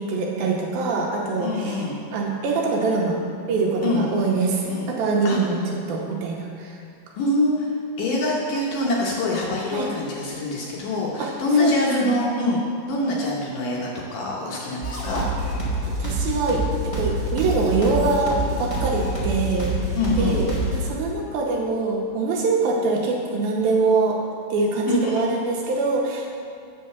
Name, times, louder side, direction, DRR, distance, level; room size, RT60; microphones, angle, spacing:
voice 1, 0.0-1.8 2.1-3.2 3.5-6.8 9.7-9.9 11.2-11.3 11.6-11.7 12.0-12.2 16.0-24.2 24.5-26.3, right 3 dB, 75° right, -1 dB, 2.4 m, -24 dB
voice 2, 1.4-2.0 3.8-4.0 4.7-4.9 5.2-5.4 7.2-7.7 8.0-12.6 12.9-15.2 19.9-20.5 24.9-25.2, left 2 dB, 70° left, -4 dB, 2.2 m, -24 dB
sound 1, 14.8-20.8, right 1 dB, 25° left, 0.6 m, -26 dB
8.7 x 5.7 x 6.6 m, 2.4 s
omnidirectional pair, 4.7 m